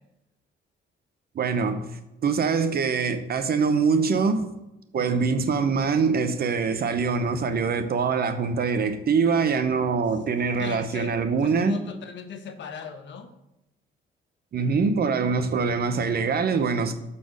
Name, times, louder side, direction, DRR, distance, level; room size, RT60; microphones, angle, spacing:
voice 1, 1.4-1.9 2.2-4.5 4.9-11.8 14.5-16.9, right 5 dB, 50° right, 0.7 m, -24 dB
voice 2, 4.9-5.3 10.6-13.3, left 6 dB, 65° left, 1.0 m, -39 dB
6.8 x 4.2 x 6.2 m
cardioid pair, 90°, 20 cm